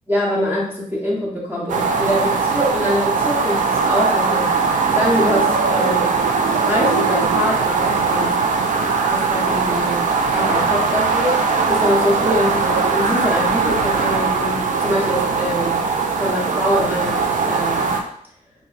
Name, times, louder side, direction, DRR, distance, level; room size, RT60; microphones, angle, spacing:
voice 1, 0.1-4.5 4.9-6.1 6.5-8.4 9.0-11.4 11.7-15.8 16.2-17.9, left 1 dB, 15° right, -5 dB, 0.8 m, -23 dB
sound 1, 1.7-18.0, right 4 dB, 60° right, 0.4 m, -20 dB
2.5 x 2.1 x 3.9 m, 0.64 s
wide cardioid pair, 125°, 15 cm